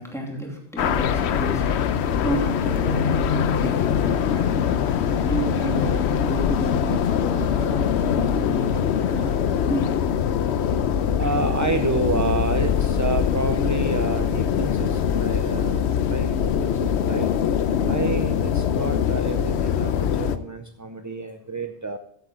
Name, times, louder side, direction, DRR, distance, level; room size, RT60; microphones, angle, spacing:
voice 1, 0.0-10.1, equal, 5° left, -1 dB, 2.7 m, -32 dB
sound 1, 0.8-20.4, left 8 dB, 90° left, 0.9 m, -23 dB
voice 2, 11.1-17.3 17.8-22.0, right 3 dB, 25° right, 6 dB, 0.4 m, -29 dB
14.0 x 8.1 x 3.7 m, 0.68 s
omnidirectional pair, 1.1 m